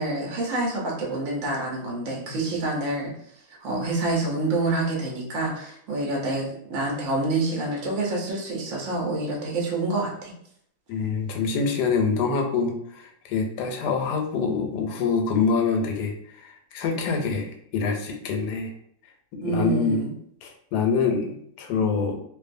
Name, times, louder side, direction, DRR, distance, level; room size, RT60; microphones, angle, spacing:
voice 1, 0.0-3.1 3.6-10.3 19.4-20.1, right 2 dB, 60° right, -2 dB, 0.9 m, -27 dB
voice 2, 10.9-16.1 16.4-18.7 19.3-20.0 20.4-22.2, left 5 dB, 80° left, 3 dB, 1.1 m, -25 dB
2.6 x 2.3 x 2.5 m, 0.68 s
omnidirectional pair, 1.7 m